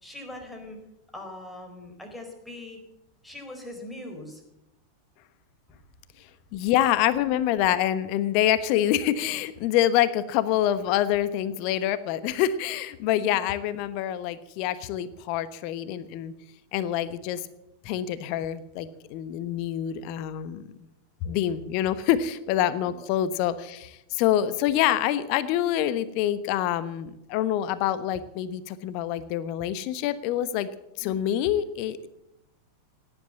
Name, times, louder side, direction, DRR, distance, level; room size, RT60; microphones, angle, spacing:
voice 1, 0.0-0.8 1.1-2.8 3.2-4.4 5.7-5.8 13.1-13.5 22.8-22.9 31.0-31.2, left 1 dB, 5° left, 2 dB, 4.4 m, -41 dB
voice 2, 6.5-16.3 16.7-17.4 17.8-20.7 21.2-30.7 31.0-32.1, left 11 dB, 45° left, 15 dB, 1.1 m, -26 dB
17.0 x 11.0 x 7.7 m, 0.86 s
figure-of-eight pair, 90°, 0 cm